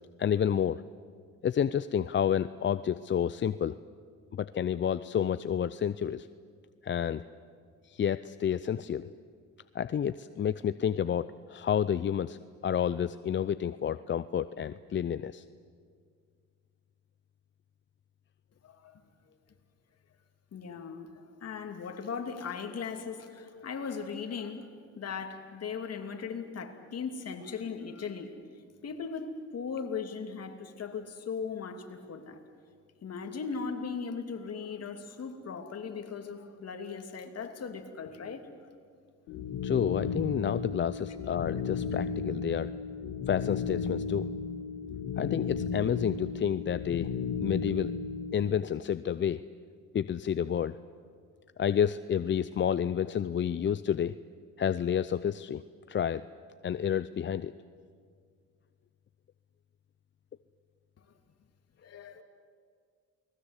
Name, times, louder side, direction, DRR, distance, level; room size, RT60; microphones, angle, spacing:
voice 1, 0.2-0.8 1.4-3.8 4.3-6.3 6.8-7.2 7.8-9.2 9.7-15.4 39.6-42.7 43.3-44.3 45.2-47.1 47.4-47.9 48.3-49.4 49.9-50.8 51.6-54.1 54.6-55.6 55.9-56.2 56.6-57.5, left 9 dB, 40° left, 14 dB, 0.5 m, -30 dB
voice 2, 18.6-19.0 20.5-24.7 25.0-28.3 28.8-32.4 33.0-38.5 61.8-62.2, left 5 dB, 55° left, 5 dB, 2.8 m, -38 dB
sound 1, 39.3-48.5, left 5 dB, 85° left, 2.6 m, -34 dB
29.0 x 20.5 x 8.2 m, 2.1 s
cardioid pair, 90°, 30 cm